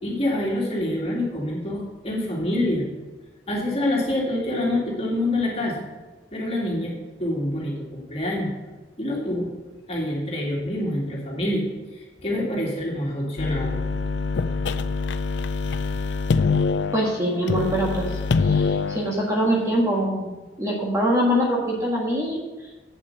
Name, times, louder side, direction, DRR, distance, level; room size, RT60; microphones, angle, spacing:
voice 1, 0.0-2.9 3.5-5.9 6.3-8.5 9.0-9.5 9.9-13.8, left 1 dB, 35° left, -2 dB, 2.2 m, -26 dB
sound 1, 13.4-19.7, left 4 dB, 80° left, 0.4 m, -25 dB
voice 2, 16.9-18.1 18.4-20.3 20.6-22.4, equal, 15° right, -3 dB, 1.7 m, -23 dB
8.3 x 7.4 x 6.5 m, 1.2 s
head